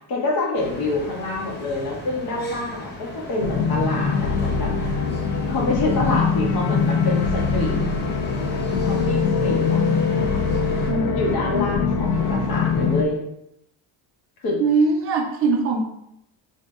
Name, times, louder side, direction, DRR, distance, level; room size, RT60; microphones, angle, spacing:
voice 1, 0.0-4.7 5.5-7.8 8.8-9.8 11.1-13.2 14.4-14.6, left 2 dB, 45° left, -2 dB, 1.0 m, -26 dB
sound 1, 0.5-10.9, left 1 dB, 20° left, 0.6 m, -38 dB
sound 2, 3.4-13.0, left 5 dB, 70° left, 0.5 m, -22 dB
voice 2, 10.9-11.2 14.6-15.8, right 4 dB, 30° right, 2 dB, 0.4 m, -21 dB
2.8 x 2.6 x 3.4 m, 0.78 s
cardioid pair, 145°, 49 cm